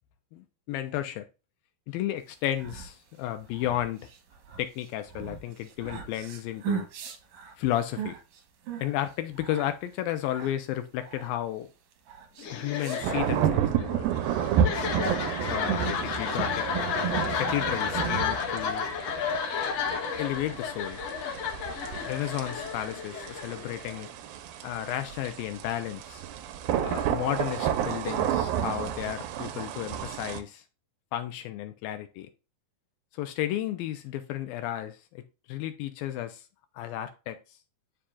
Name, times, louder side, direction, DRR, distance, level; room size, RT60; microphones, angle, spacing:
voice 1, 0.3-1.3 1.9-4.1 4.6-6.9 7.6-8.2 8.8-11.7 12.5-14.1 15.5-16.7 17.4-18.9 20.2-21.0 22.0-24.1 24.6-26.2 26.8-30.6 31.1-32.3 33.1-35.2 35.5-36.5 36.8-37.4, left 12 dB, 80° left, 2.3 m, -33 dB
sound 1, 2.3-13.5, right 7 dB, 60° right, 2.1 m, -40 dB
sound 2, 12.4-24.1, left 6 dB, 65° left, 1.7 m, -32 dB
sound 3, 13.0-30.4, right 9 dB, 80° right, 2.4 m, -31 dB
11.5 x 4.9 x 2.4 m
omnidirectional pair, 4.5 m